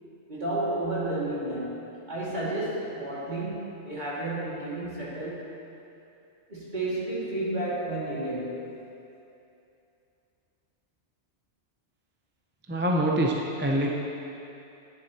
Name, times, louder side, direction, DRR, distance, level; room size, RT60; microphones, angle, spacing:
voice 1, 0.3-5.5 6.5-8.7, right 1 dB, 40° right, -8 dB, 2.4 m, -31 dB
voice 2, 12.7-13.3 13.6-13.9, right 1 dB, 15° right, -1 dB, 0.5 m, -24 dB
11.5 x 10.0 x 2.9 m, 2.7 s
omnidirectional pair, 1.2 m